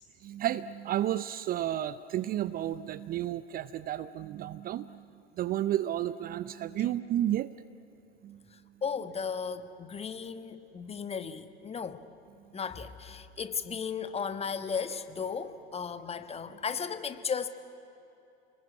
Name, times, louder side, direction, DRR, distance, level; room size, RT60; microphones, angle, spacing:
voice 1, 0.0-5.0 5.4-7.5 8.2-8.4, right 12 dB, 30° right, 16 dB, 0.6 m, -32 dB
voice 2, 8.8-12.0 12.5-17.5, left 6 dB, 20° left, 11 dB, 1.4 m, -35 dB
29.5 x 20.5 x 9.6 m, 2.9 s
figure-of-eight pair, 80°, 32 cm